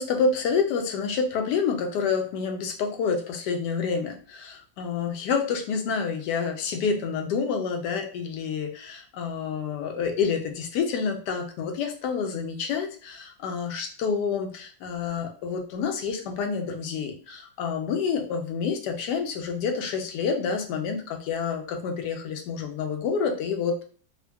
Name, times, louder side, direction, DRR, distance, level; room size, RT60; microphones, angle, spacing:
voice 1, 0.0-23.8, left 5 dB, 70° left, 4 dB, 1.1 m, -28 dB
3.5 x 2.2 x 2.2 m, 0.43 s
omnidirectional pair, 2.0 m